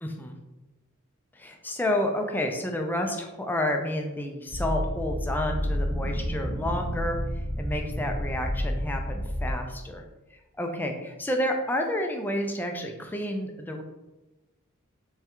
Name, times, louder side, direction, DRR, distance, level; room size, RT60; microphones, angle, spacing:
voice 1, 0.0-0.4 1.3-10.0 10.6-13.8, left 1 dB, 10° left, 3 dB, 0.4 m, -30 dB
sound 1, 4.5-9.5, equal, 90° right, 0.9 m, -30 dB
3.5 x 3.3 x 2.9 m, 1.0 s
head